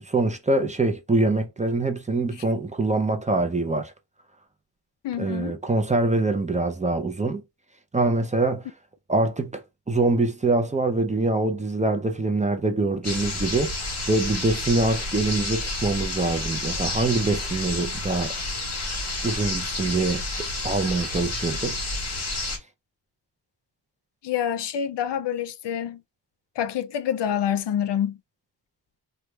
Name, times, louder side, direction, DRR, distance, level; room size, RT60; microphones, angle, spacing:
voice 1, 0.0-3.9 5.2-7.4 7.9-8.6 9.1-9.6 9.9-13.7 14.1-18.3 19.2-21.8, right 2 dB, 20° right, 0.4 m, -24 dB
voice 2, 5.0-5.6 24.2-26.0 26.6-28.2, left 9 dB, 85° left, 0.5 m, -27 dB
sound 1, 13.0-22.6, left 2 dB, 40° left, 1.4 m, -30 dB
3.0 x 2.3 x 3.2 m
wide cardioid pair, 115°, 41 cm